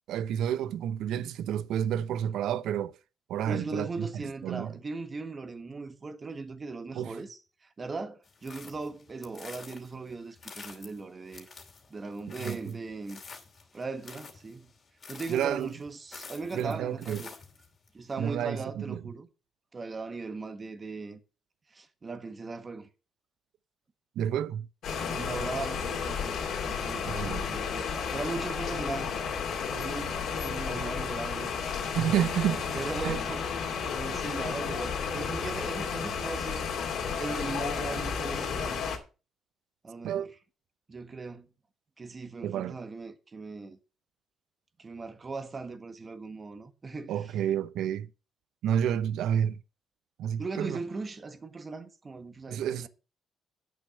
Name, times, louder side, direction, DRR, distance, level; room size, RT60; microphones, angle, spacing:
voice 1, 0.1-3.0 3.3-4.7 6.9-7.1 12.4-12.6 15.3-15.7 16.5-17.2 18.2-19.0 24.2-24.7 27.1-27.4 29.8-29.9 31.9-32.6 33.0-33.2 40.0-40.3 42.4-42.8 47.1-48.1 48.6-49.6 50.2-50.8 52.5-52.9, right 9 dB, 80° right, 0.6 m, -30 dB
voice 2, 3.4-7.4 7.8-11.5 11.9-13.2 13.7-14.7 15.1-17.3 17.9-19.3 19.7-21.2 21.7-22.9 25.0-26.3 26.6-29.2 29.7-30.1 30.4-31.6 32.7-33.5 33.9-36.7 37.2-38.8 39.8-40.3 40.9-41.5 42.0-43.8 44.8-47.1 50.4-52.9, right 3 dB, 35° right, 1.6 m, -38 dB
sound 1, 8.2-17.9, left 4 dB, 45° left, 2.6 m, -49 dB
sound 2, 24.8-39.0, left 6 dB, 75° left, 2.6 m, -32 dB
8.7 x 6.5 x 6.3 m
cardioid pair, 90°, 0 cm